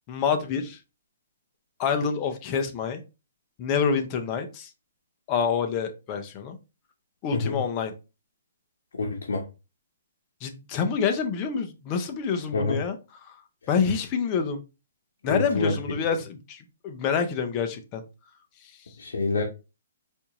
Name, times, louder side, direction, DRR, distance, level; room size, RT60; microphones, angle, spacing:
voice 1, 0.1-0.8 1.8-3.0 3.6-4.7 5.3-6.6 7.2-7.9 10.4-13.0 13.2-13.4 13.7-14.6 15.2-18.0 18.6-18.9, left 6 dB, 25° left, 6 dB, 0.5 m, -27 dB
voice 2, 8.9-9.4 12.5-12.8 15.2-15.7 19.0-19.4, left 3 dB, 85° left, 0 dB, 0.7 m, -27 dB
4.3 x 2.4 x 2.9 m, 0.29 s
hypercardioid pair, 170°, 0 cm